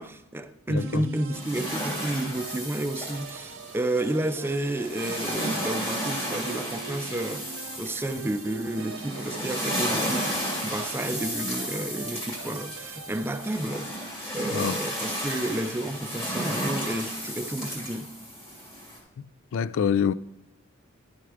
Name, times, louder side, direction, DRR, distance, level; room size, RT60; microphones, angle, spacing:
voice 1, 0.0-7.5 7.8-10.3 10.6-13.9 14.3-18.1, right 1 dB, 10° right, 0.4 m, -31 dB
voice 2, 0.7-1.0 14.5-14.8 19.5-20.1, left 7 dB, 65° left, 0.3 m, -25 dB
sound 1, 0.8-13.6, right 6 dB, 65° right, 0.6 m, -43 dB
sound 2, 1.3-19.0, equal, 25° left, 2.7 m, -33 dB
11.0 x 4.6 x 4.9 m
head